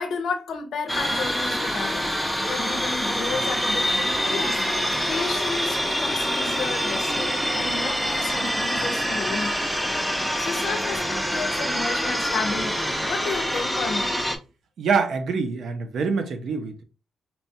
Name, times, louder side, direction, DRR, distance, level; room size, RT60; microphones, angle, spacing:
voice 1, 0.0-2.1 2.5-4.6 5.1-9.6 10.4-14.2, left 5 dB, 85° left, 0.5 m, -32 dB
sound 1, 0.9-14.4, equal, 5° right, 0.4 m, -25 dB
voice 2, 14.8-16.8, right 5 dB, 70° right, 0.6 m, -25 dB
4.2 x 2.2 x 2.7 m
wide cardioid pair, 170°, 0 cm